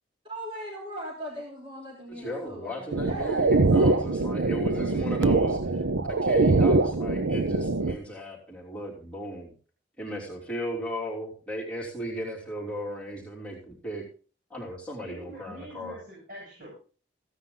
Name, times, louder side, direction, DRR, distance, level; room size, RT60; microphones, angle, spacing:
voice 1, 0.2-4.0, equal, 30° right, -4 dB, 3.3 m, -40 dB
voice 2, 2.1-5.8 6.1-9.5 10.0-14.0 14.5-16.0, equal, 5° left, -6 dB, 3.1 m, -36 dB
sound 1, 2.9-8.0, right 3 dB, 80° right, 0.7 m, -23 dB
voice 3, 15.0-16.8, equal, 50° right, -5 dB, 7.7 m, -44 dB
15.5 x 9.5 x 3.9 m, 0.38 s
head